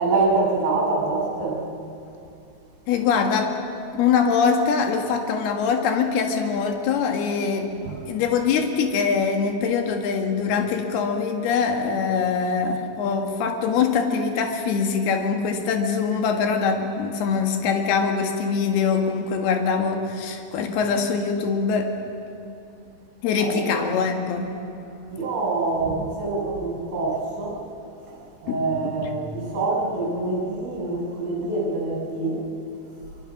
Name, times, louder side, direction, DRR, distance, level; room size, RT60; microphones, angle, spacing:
voice 1, 0.0-1.6 7.9-8.0 23.4-23.9 25.1-27.6 28.1-28.2 28.4-32.4, right 3 dB, 50° right, -3 dB, 8.1 m, -25 dB
voice 2, 2.9-3.6 3.9-7.7 8.0-22.0 23.2-24.5 28.5-28.6 29.0-29.1, left 5 dB, 65° left, 4 dB, 3.4 m, -23 dB
25.5 x 24.5 x 6.1 m, 2.6 s
omnidirectional pair, 5.5 m